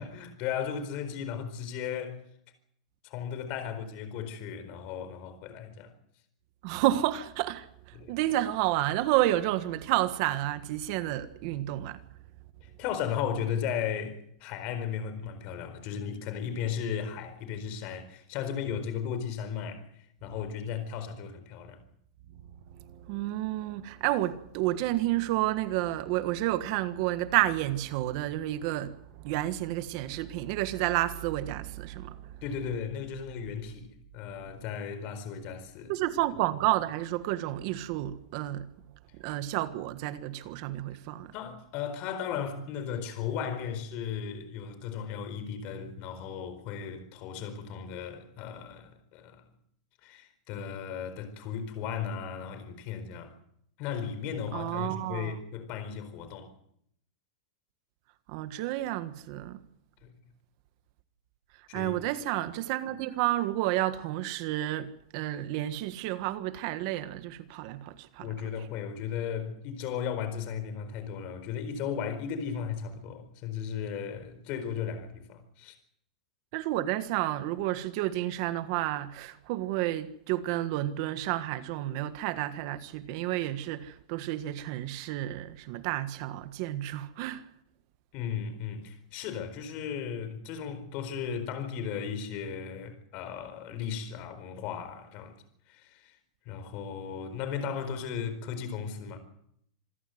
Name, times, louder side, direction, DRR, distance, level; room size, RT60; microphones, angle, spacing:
voice 1, 0.0-2.2 3.0-5.9 7.9-8.2 12.6-19.9 20.2-21.8 32.4-35.9 41.3-49.4 50.0-53.3 53.8-56.5 60.0-60.1 61.7-62.0 68.2-75.8 88.1-95.3 95.7-96.2 96.5-99.2, left 7 dB, 40° left, 4.4 m, -36 dB
voice 2, 6.6-12.0 22.8-32.3 35.9-38.7 39.2-41.3 54.5-55.4 58.3-59.6 61.7-68.3 76.5-87.4, right 15 dB, 45° right, 1.5 m, -30 dB
26.5 x 15.5 x 7.9 m
supercardioid pair, 160°, 4 cm